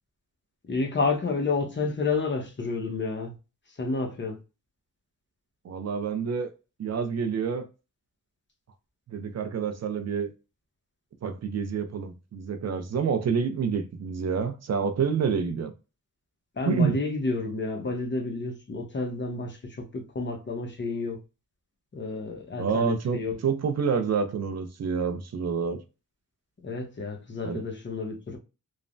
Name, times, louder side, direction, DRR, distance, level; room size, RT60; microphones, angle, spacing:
voice 1, 0.6-3.3 3.8-4.4 16.6-21.2 21.9-23.4 26.6-28.4, left 3 dB, 35° left, 0.8 m, -30 dB
voice 2, 5.6-6.5 6.8-7.6 9.1-10.3 11.2-15.7 16.7-17.0 22.6-25.8 27.4-27.6, right 6 dB, 50° right, 0.5 m, -28 dB
3.2 x 2.1 x 2.5 m
cardioid pair, 90°, 33 cm